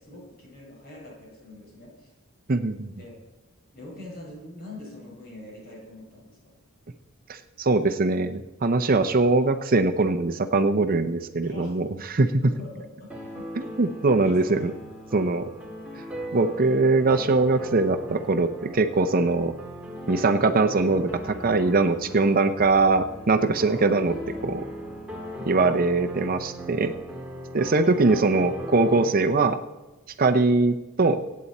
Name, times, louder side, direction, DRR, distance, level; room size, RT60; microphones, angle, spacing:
voice 1, 0.0-2.1 2.9-3.2 3.7-6.5 11.4-11.8 12.4-13.5 14.2-14.7 23.6-24.6 26.8-27.1, left 2 dB, 45° left, -2 dB, 5.4 m, -43 dB
voice 2, 2.5-2.9 7.3-12.3 13.6-14.7 15.1-15.5 15.9-16.0 16.3-19.5 20.1-24.1 24.4-24.6 25.5-26.9 27.5-29.6 30.2-31.2, right 3 dB, 40° right, 9 dB, 0.6 m, -22 dB
sound 1, 13.1-29.1, equal, 5° right, 1.9 m, -38 dB
24.5 x 8.5 x 4.2 m, 1.1 s
head